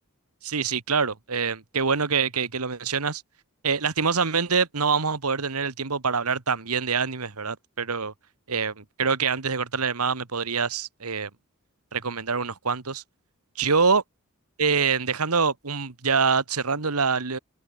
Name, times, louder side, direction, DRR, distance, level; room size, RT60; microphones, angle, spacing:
voice 1, 0.4-3.2 3.6-8.1 8.5-11.3 11.9-13.0 13.5-14.0 14.6-17.4, right 5 dB, 90° right, 1.6 m, -25 dB
open air
head